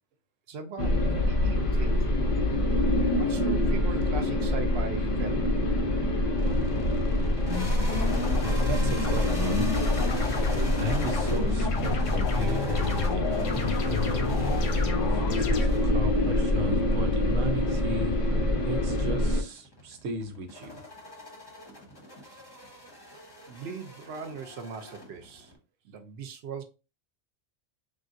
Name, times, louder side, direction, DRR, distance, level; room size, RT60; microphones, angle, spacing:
voice 1, 0.5-0.9 1.2-2.1 3.2-5.5 23.5-25.5 25.8-26.6, right 5 dB, 65° right, 0.8 m, -39 dB
sound 1, 0.8-19.4, left 1 dB, 50° left, 0.4 m, -26 dB
sound 2, 6.4-25.6, equal, 25° left, 0.7 m, -41 dB
sound 3, 7.5-15.7, left 6 dB, 90° left, 1.0 m, -33 dB
voice 2, 8.7-9.7 10.5-18.1 18.6-20.7 22.2-22.4, left 1 dB, 85° right, 1.1 m, -35 dB
3.5 x 2.3 x 2.5 m
omnidirectional pair, 1.3 m